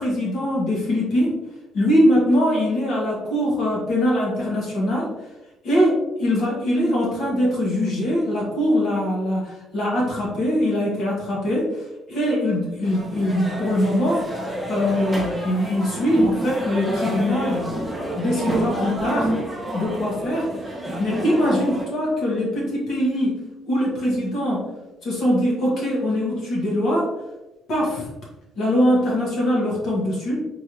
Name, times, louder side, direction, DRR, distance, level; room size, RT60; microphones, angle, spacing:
voice 1, 0.0-1.4 1.7-5.1 5.6-14.3 14.7-17.7 18.2-19.3 19.7-23.4 23.7-24.7 25.0-27.1 27.7-28.1 28.6-30.4, equal, 50° left, -4 dB, 1.3 m, -22 dB
sound 1, 12.8-21.9, right 1 dB, 5° right, 0.7 m, -29 dB
4.5 x 3.3 x 2.9 m, 1.0 s
cardioid pair, 170°, 0 cm